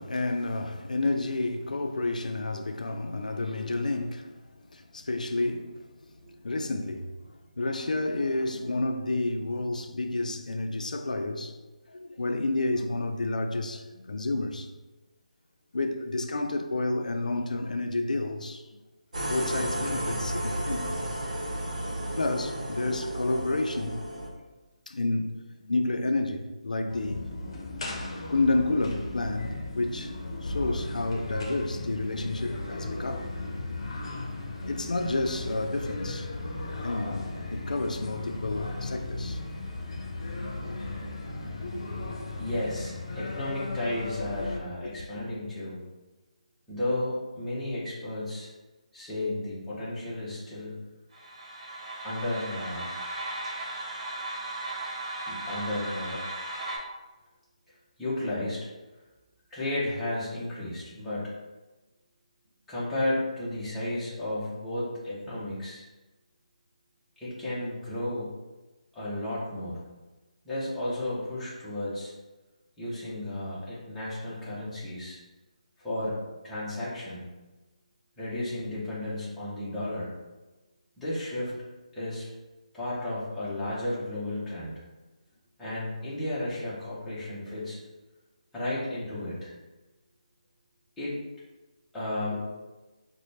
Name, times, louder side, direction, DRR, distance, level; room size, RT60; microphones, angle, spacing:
voice 1, 0.0-4.3 4.7-5.9 6.4-7.1 7.6-11.6 11.9-14.7 15.7-18.6 19.3-21.0 22.2-24.0 24.9-25.4 25.6-27.2 28.3-30.1 30.4-33.3 34.7-36.3 36.8-39.4 41.8-42.4 44.8-45.0, left 2 dB, 90° left, 0.4 m, -30 dB
sound 1, 19.1-24.3, right 1 dB, 75° right, 0.9 m, -33 dB
sound 2, 26.9-44.6, left 2 dB, 45° left, 0.7 m, -36 dB
voice 2, 41.7-45.8 46.7-48.5 48.9-50.8 52.0-52.9 55.3-56.2 57.7-58.7 59.5-61.4 62.7-65.8 67.2-68.3 68.9-69.8 70.4-72.1 72.8-75.2 75.8-77.3 78.2-80.1 81.0-81.6 81.9-82.3 82.7-84.8 85.6-87.8 88.5-89.5 91.0-91.2 91.9-92.4, left 1 dB, 5° left, 0.6 m, -33 dB
sound 3, 51.1-56.8, right 2 dB, 60° right, 1.3 m, -36 dB
3.9 x 2.2 x 3.1 m
figure-of-eight pair, 165°, 4 cm